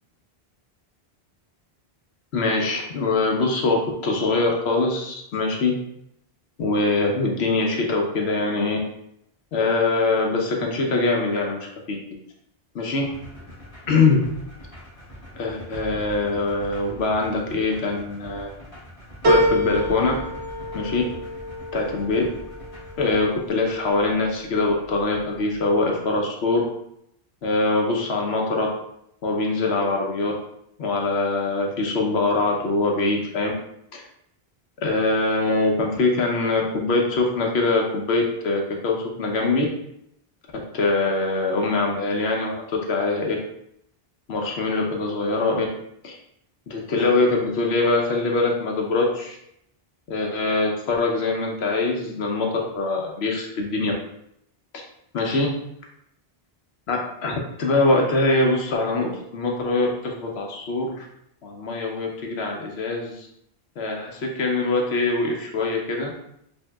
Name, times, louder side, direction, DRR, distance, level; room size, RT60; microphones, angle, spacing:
voice 1, 2.3-5.8 6.6-8.8 9.5-11.6 11.9-12.0 12.7-13.1 13.9-14.3 15.4-18.5 19.2-20.1 20.7-21.0 21.7-22.3 23.0-26.6 27.4-28.7 29.2-30.3 30.8-33.5 33.9-34.0 34.8-39.7 40.7-43.4 44.3-45.7 46.0-46.2 46.7-49.4 50.1-53.9 54.7-54.8 55.1-55.5 56.9-57.3 57.6-61.1 61.4-63.3 63.8-66.1, left 3 dB, 85° left, 1 dB, 1.1 m, -23 dB
sound 1, 13.0-23.2, equal, 35° left, 1.5 m, -42 dB
sound 2, 19.2-24.0 24.5-25.2 25.6-25.7, equal, 65° right, 1.2 m, -27 dB
5.1 x 2.8 x 2.3 m, 0.76 s
omnidirectional pair, 1.0 m